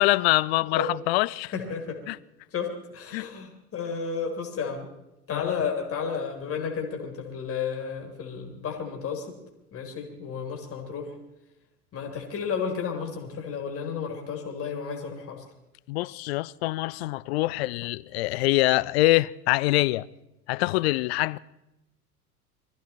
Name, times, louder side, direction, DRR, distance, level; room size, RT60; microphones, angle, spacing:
voice 1, 0.0-1.5 2.1-2.2 3.1-3.3 5.3-5.5 15.9-20.1 20.5-21.4, left 19 dB, 45° left, 0.5 m, -24 dB
voice 2, 1.5-2.0 2.5-4.9 5.3-9.3 9.7-11.1 11.9-15.4, left 6 dB, 30° left, 3.1 m, -32 dB
22.5 x 14.5 x 4.4 m
figure-of-eight pair, 80°, 45 cm